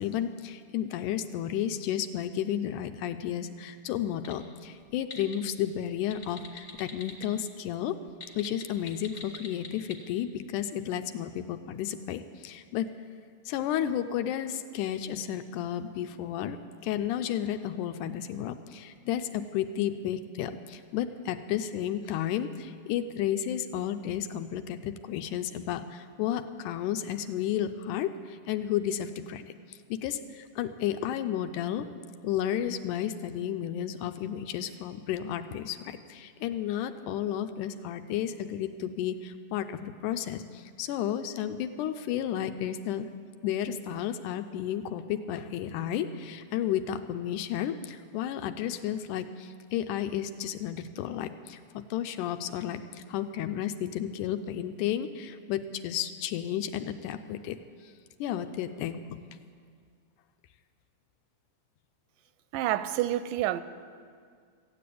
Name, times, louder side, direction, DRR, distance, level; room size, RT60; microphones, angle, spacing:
voice 1, 0.0-8.0 8.4-12.9 13.5-16.6 16.8-31.9 32.2-43.1 43.4-57.6 58.2-59.2, left 10 dB, 80° left, 2.0 m, -32 dB
sound 1, 4.2-4.4 4.8-5.3 6.0-7.2 8.1-9.9, left 3 dB, 20° left, 0.8 m, -42 dB
voice 2, 62.5-63.6, right 13 dB, 90° right, 2.2 m, -28 dB
15.0 x 8.6 x 8.4 m
omnidirectional pair, 3.7 m